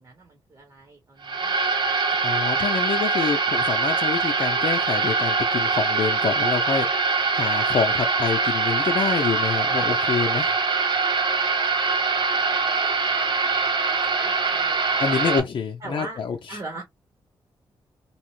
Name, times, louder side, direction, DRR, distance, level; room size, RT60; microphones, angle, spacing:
voice 1, 0.0-1.6 11.8-13.2 13.8-15.0 15.8-16.2 16.5-16.8, right 2 dB, 40° right, 1.1 m, -41 dB
sound 1, 1.2-15.4, right 4 dB, 55° right, 0.7 m, -23 dB
voice 2, 2.2-10.6 15.0-16.6, left 6 dB, 60° left, 0.6 m, -27 dB
3.0 x 2.1 x 3.0 m
wide cardioid pair, 115°, 9 cm